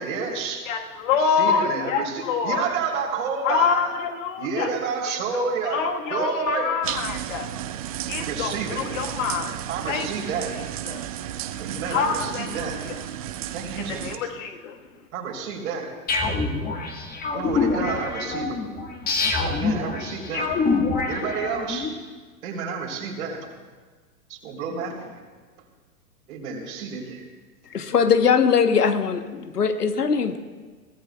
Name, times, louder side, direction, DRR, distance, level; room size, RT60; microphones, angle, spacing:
voice 1, 0.0-0.7 1.1-3.9 4.4-6.8 8.2-8.8 9.7-10.6 11.6-12.8 13.5-14.3 15.1-15.9 16.8-16.9 17.3-18.6 19.4-20.5 21.1-21.9 22.4-23.5 24.3-25.1 26.3-27.2, right 5 dB, 60° right, 0 dB, 3.7 m, -30 dB
voice 2, 0.6-2.7 3.4-4.7 5.1-7.5 8.1-9.6 9.9-10.1 10.9-11.0 11.9-13.0 13.9-14.8, left 6 dB, 55° left, 4 dB, 1.6 m, -26 dB
sound 1, 6.8-14.2, right 11 dB, 25° right, 0.4 m, -33 dB
sound 2, 16.1-21.9, left 4 dB, 20° left, 1.6 m, -25 dB
voice 3, 27.6-30.4, left 6 dB, 80° left, 9 dB, 1.1 m, -21 dB
22.5 x 17.0 x 2.3 m, 1.4 s
figure-of-eight pair, 105°, 47 cm